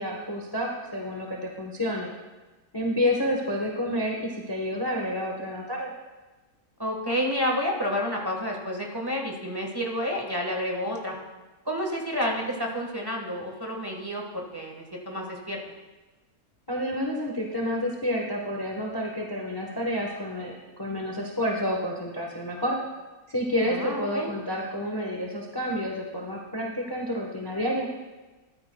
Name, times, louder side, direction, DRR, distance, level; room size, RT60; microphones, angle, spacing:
voice 1, 0.0-2.1 2.7-5.9 16.7-20.5 20.8-22.8 23.3-27.9, equal, 15° left, -1 dB, 0.9 m, -29 dB
voice 2, 6.8-11.2 11.6-15.6 23.6-24.3, equal, 15° right, -1 dB, 1.4 m, -30 dB
14.0 x 12.5 x 2.3 m, 1.2 s
omnidirectional pair, 1.7 m